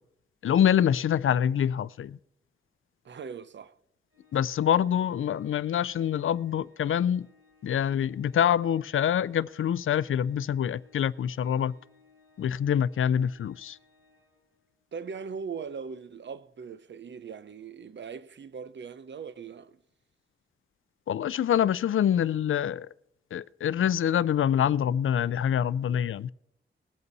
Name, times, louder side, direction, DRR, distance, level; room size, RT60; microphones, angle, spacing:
voice 1, 0.4-2.2 4.3-7.3 7.6-11.7 12.4-13.8 21.1-22.9 23.3-26.3, left 9 dB, 75° left, 0.4 m, -25 dB
voice 2, 3.0-3.8 14.9-19.8, right 6 dB, 60° right, 0.7 m, -40 dB
Organ, 4.1-14.9, left 4 dB, 85° right, 6.0 m, -63 dB
20.0 x 8.1 x 4.1 m
wide cardioid pair, 110°, 21 cm